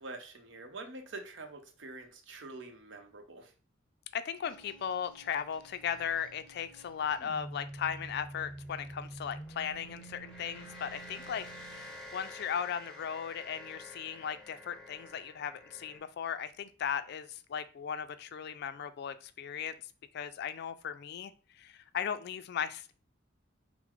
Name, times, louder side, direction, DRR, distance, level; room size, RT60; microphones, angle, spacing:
voice 1, 0.0-3.5, right 3 dB, 70° right, 5 dB, 0.7 m, -46 dB
voice 2, 4.1-19.7 20.1-22.9, left 8 dB, 55° left, 12 dB, 0.3 m, -37 dB
sound 1, 4.4-16.0, equal, 5° left, 1.5 m, -48 dB
3.8 x 2.0 x 4.4 m, 0.37 s
head